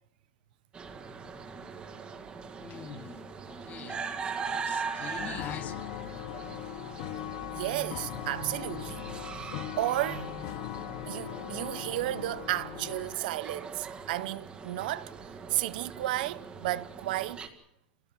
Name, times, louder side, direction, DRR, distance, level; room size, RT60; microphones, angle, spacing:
sound 1, 0.7-17.5, right 5 dB, 20° right, 2.1 m, -41 dB
voice 1, 2.6-4.0 4.5-6.0 10.7-10.8, left 8 dB, 30° left, 1.6 m, -44 dB
sound 2, 5.2-13.2, left 15 dB, 55° left, 0.8 m, -40 dB
voice 2, 7.5-9.1 9.3-10.4 11.1-17.4, right 15 dB, 70° right, 0.8 m, -33 dB
26.5 x 17.5 x 7.5 m
supercardioid pair, 140°, 5 cm